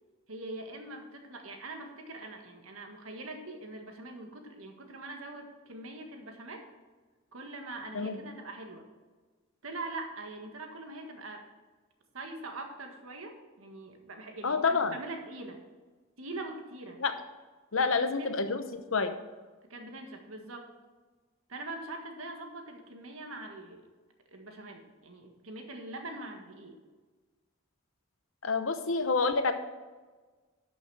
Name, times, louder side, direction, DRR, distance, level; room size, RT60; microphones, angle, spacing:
voice 1, 0.3-6.6 7.3-8.9 9.6-11.4 12.1-15.6 16.2-17.0 17.8-18.4 19.6-20.7 21.5-23.8 24.3-26.8, right 2 dB, 90° right, 4 dB, 1.7 m, -43 dB
voice 2, 14.4-14.9 17.0-17.1 17.7-19.1 28.4-29.5, left 4 dB, 70° left, 9 dB, 0.9 m, -28 dB
12.0 x 6.2 x 4.8 m, 1.3 s
head